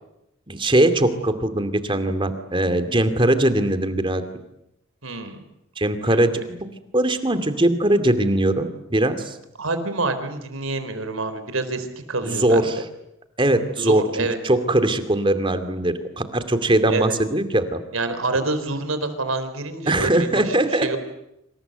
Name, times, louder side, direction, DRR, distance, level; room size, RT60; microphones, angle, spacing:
voice 1, 0.5-4.2 5.8-6.3 6.9-9.4 12.2-12.8 13.4-17.8 19.9-21.0, right 1 dB, 25° right, 10 dB, 2.4 m, -21 dB
voice 2, 5.0-5.4 6.0-6.3 9.6-12.7 13.8-14.4 16.9-17.2 17.9-20.6 20.8-21.0, right 3 dB, 90° right, 10 dB, 4.3 m, -27 dB
27.5 x 26.5 x 8.0 m, 0.86 s
head